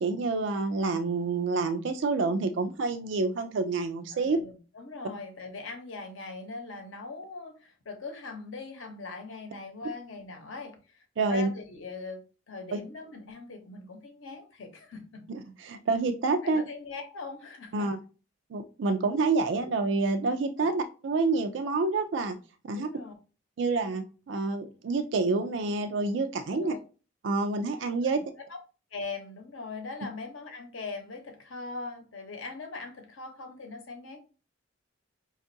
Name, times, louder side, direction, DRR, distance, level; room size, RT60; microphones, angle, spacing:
voice 1, 0.0-4.4 11.2-11.5 12.7-12.8 15.3-16.6 17.7-18.0 18.5-22.4 22.6-22.9 23.6-26.7 27.2-28.2, right 3 dB, 65° right, 8 dB, 0.4 m, -28 dB
voice 2, 4.1-15.2 16.4-17.9 20.6-20.7 22.8-23.1 26.5-26.8 28.0-28.1 28.9-34.2, left 3 dB, 85° left, 4 dB, 0.8 m, -41 dB
5.1 x 2.4 x 2.6 m, 0.34 s
head